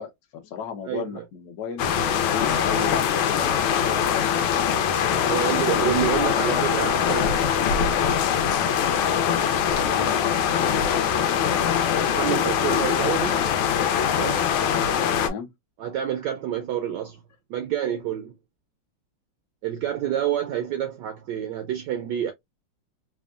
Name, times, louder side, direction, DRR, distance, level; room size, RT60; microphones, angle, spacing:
voice 1, 0.0-1.8 2.2-6.6 15.2-15.5, left 7 dB, 60° left, 1.1 m, -36 dB
voice 2, 0.9-1.2 5.3-7.4 12.1-13.5 14.1-14.5 15.8-17.2 17.5-18.3 19.6-22.3, right 10 dB, 75° right, 1.0 m, -28 dB
sound 1, 1.8-15.3, left 8 dB, 80° left, 1.4 m, -22 dB
3.5 x 2.1 x 2.3 m
omnidirectional pair, 2.3 m